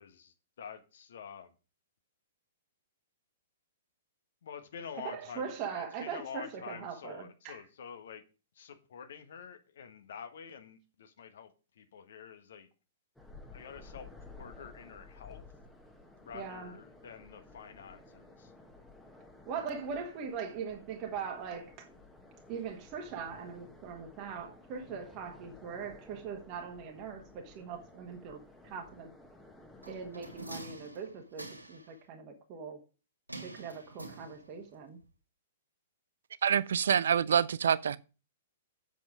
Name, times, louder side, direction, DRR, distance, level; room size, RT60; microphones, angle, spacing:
voice 1, 0.0-1.5 4.4-8.2 8.5-12.7 13.5-14.1 14.4-15.4 16.2-18.5, left 7 dB, 55° left, 1.5 m, -48 dB
voice 2, 5.0-7.6 16.3-16.7 19.5-21.9 22.5-29.1 29.9-32.8 33.4-35.0, right 6 dB, 30° right, 1.5 m, -41 dB
sound 1, 13.2-31.1, left 2 dB, 5° left, 1.3 m, -55 dB
sound 2, 29.8-31.9 33.3-34.7 35.0-35.1, right 2 dB, 85° right, 2.3 m, -46 dB
voice 3, 36.4-38.0, right 8 dB, 60° right, 0.5 m, -26 dB
7.7 x 7.4 x 5.0 m
figure-of-eight pair, 110°, 0 cm